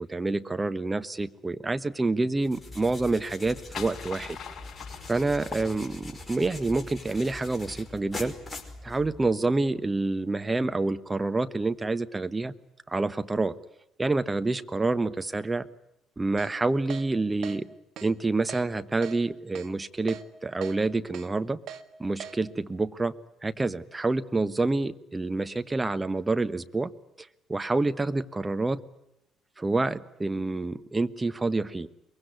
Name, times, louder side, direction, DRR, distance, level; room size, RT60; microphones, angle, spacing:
voice 1, 0.0-4.4 5.1-8.3 8.8-12.5 12.9-13.5 14.0-15.7 16.2-17.7 18.0-21.6 22.0-23.1 23.4-26.9 27.2-28.8 29.6-31.9, right 3 dB, 20° right, 11 dB, 1.3 m, -28 dB
sound 1, 2.4-9.4, left 2 dB, 20° left, 5.0 m, -43 dB
sound 2, 3.2-6.3, left 7 dB, 40° left, 6.0 m, -42 dB
Keyboard (musical), 16.4-16.5 16.9-17.0 17.4-17.6 18.0-18.1 18.5-18.6 19.0-19.2 19.6-19.7 20.1-20.2 20.6-20.8 21.1-21.3 21.7-21.8 22.2-22.3, right 9 dB, 60° right, 1.5 m, -39 dB
23.5 x 22.5 x 9.7 m, 0.81 s
figure-of-eight pair, 50°, 0 cm